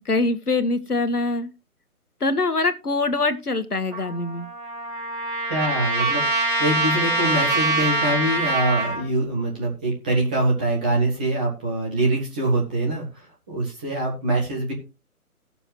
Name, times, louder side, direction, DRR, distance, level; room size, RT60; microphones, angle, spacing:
voice 1, 0.0-1.5 2.2-4.5, left 3 dB, 85° left, 11 dB, 1.4 m, -23 dB
Trumpet, 3.9-9.0, right 2 dB, 35° right, 3.6 m, -24 dB
voice 2, 5.5-13.1 13.5-14.7, right 1 dB, 5° right, -2 dB, 0.7 m, -24 dB
17.5 x 6.9 x 2.9 m, 0.28 s
figure-of-eight pair, 140°, 45 cm